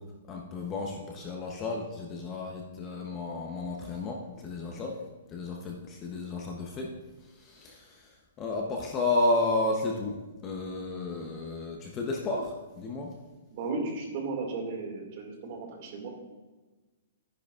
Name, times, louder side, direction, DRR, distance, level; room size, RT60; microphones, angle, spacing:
voice 1, 0.3-5.0 5.3-6.9 7.4-7.9 8.4-10.2 10.4-13.1, left 2 dB, 15° left, 1 dB, 0.7 m, -32 dB
voice 2, 13.5-16.1, right 3 dB, 35° right, 1 dB, 1.9 m, -35 dB
13.5 x 10.0 x 2.4 m, 1.2 s
hypercardioid pair, 180°, 0 cm